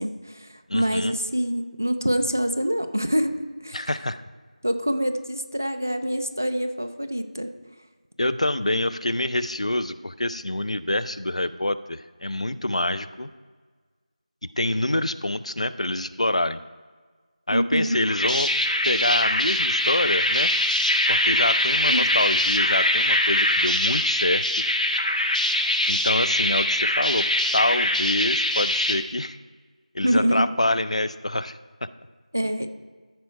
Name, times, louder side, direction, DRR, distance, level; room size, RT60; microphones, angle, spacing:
voice 1, 0.0-3.9 4.6-7.5 17.5-18.0 21.9-22.1 30.0-30.5 32.3-32.7, equal, 20° right, 8 dB, 0.3 m, -25 dB
voice 2, 0.7-1.1 3.7-4.2 8.2-13.3 14.4-16.6 17.5-18.5 18.8-20.5 21.1-24.4 25.9-29.4 29.9-31.9, left 1 dB, 55° left, 14 dB, 0.4 m, -26 dB
sound 1, 17.9-29.0, left 1 dB, 85° left, 1.4 m, -23 dB
13.5 x 4.6 x 5.4 m, 1.5 s
figure-of-eight pair, 180°, 4 cm